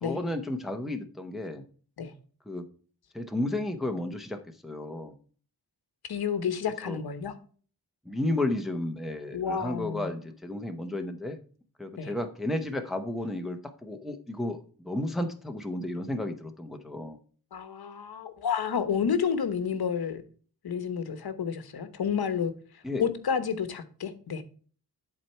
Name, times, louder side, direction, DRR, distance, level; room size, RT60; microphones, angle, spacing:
voice 1, 0.0-1.6 2.5-2.6 3.1-5.1 6.8-7.0 8.1-11.4 11.8-17.2 22.8-23.0, left 1 dB, ahead, 5 dB, 0.7 m, -33 dB
voice 2, 6.1-7.3 9.3-10.1 12.0-12.1 17.5-20.2 20.6-22.5 23.0-24.4, left 7 dB, 65° left, 11 dB, 1.1 m, -30 dB
11.0 x 4.5 x 4.4 m, 0.41 s
wide cardioid pair, 165°, 40 cm